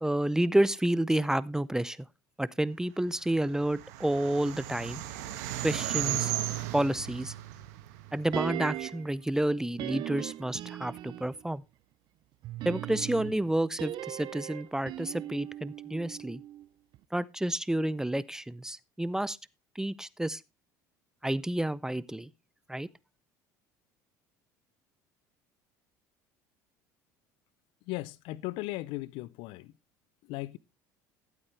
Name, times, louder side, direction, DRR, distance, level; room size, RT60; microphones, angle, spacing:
voice 1, 0.0-2.0 2.4-5.0 5.6-6.3 6.7-7.3 8.1-11.6 12.7-16.4 17.1-19.4 19.8-20.4 21.2-22.3 22.7-22.9, right 1 dB, 5° right, 0.5 m, -30 dB
sound 1, 3.3-8.7, right 13 dB, 75° right, 1.3 m, -35 dB
sound 2, 8.3-9.1 9.8-11.4 12.4-16.7 16.9-17.0, right 14 dB, 55° right, 0.5 m, -38 dB
voice 2, 27.9-29.7 30.3-30.6, left 19 dB, 65° left, 0.5 m, -37 dB
12.5 x 8.3 x 3.3 m
hypercardioid pair, 75°, 9 cm